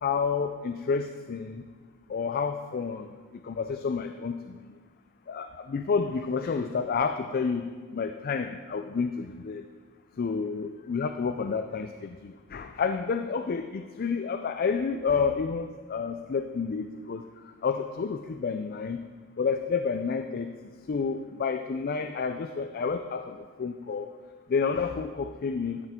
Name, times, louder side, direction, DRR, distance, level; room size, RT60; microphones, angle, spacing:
voice 1, 0.0-1.6 2.1-4.6 5.3-9.6 10.2-17.2 17.6-19.0 19.4-20.5 20.9-24.1 24.5-25.9, left 5 dB, 45° left, 7 dB, 0.4 m, -30 dB
13.0 x 8.1 x 3.7 m, 1.5 s
head